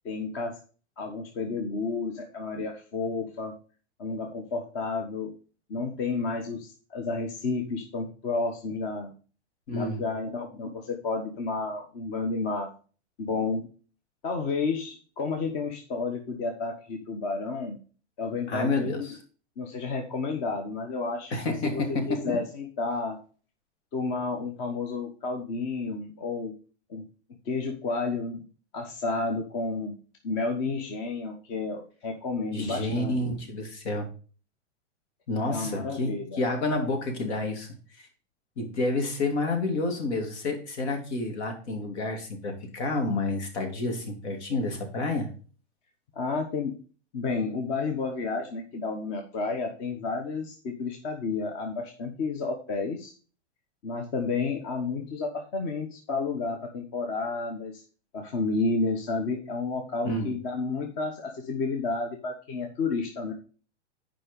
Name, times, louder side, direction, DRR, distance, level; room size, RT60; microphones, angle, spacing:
voice 1, 0.0-0.5 1.0-3.5 4.0-5.3 5.7-9.1 9.7-12.7 13.2-13.7 14.2-17.8 18.2-19.1 19.6-21.3 21.6-23.2 23.9-26.5 26.9-27.0 27.4-28.4 28.7-29.9 30.2-33.1 35.5-36.5 46.1-46.8 47.1-53.1 53.8-57.8 58.1-63.3, left 4 dB, 35° left, 3 dB, 1.3 m, -31 dB
voice 2, 9.7-10.0 18.5-19.2 21.3-22.4 32.5-34.1 35.3-37.7 38.0-38.1 38.6-45.3 60.0-60.3, left 2 dB, 70° left, 3 dB, 2.8 m, -29 dB
7.6 x 5.2 x 5.2 m, 0.38 s
supercardioid pair, 150°, 35 cm